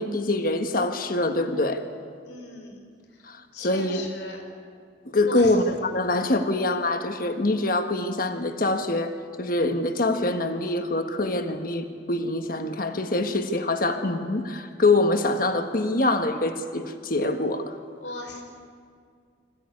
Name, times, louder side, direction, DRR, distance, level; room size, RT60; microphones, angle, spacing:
voice 1, 0.0-1.8 3.2-4.1 5.0-9.1 9.4-17.8, left 2 dB, 50° left, 7 dB, 1.4 m, -25 dB
voice 2, 2.2-2.8 3.5-4.4 5.3-5.5 18.0-18.4, left 3 dB, 85° left, 2 dB, 5.0 m, -37 dB
25.5 x 16.0 x 9.7 m, 2.1 s
head